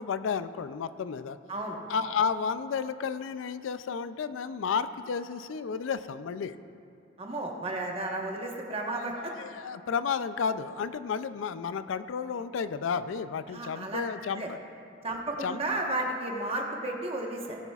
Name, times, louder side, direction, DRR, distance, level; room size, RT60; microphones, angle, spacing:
voice 1, 0.0-1.4 1.9-6.6 9.0-14.6 15.4-15.6, left 6 dB, 85° left, 13 dB, 0.4 m, -32 dB
voice 2, 7.2-9.3 13.5-14.0 14.4-14.5 15.0-17.6, right 2 dB, 30° right, 0 dB, 1.2 m, -33 dB
17.0 x 9.8 x 2.4 m, 2.7 s
head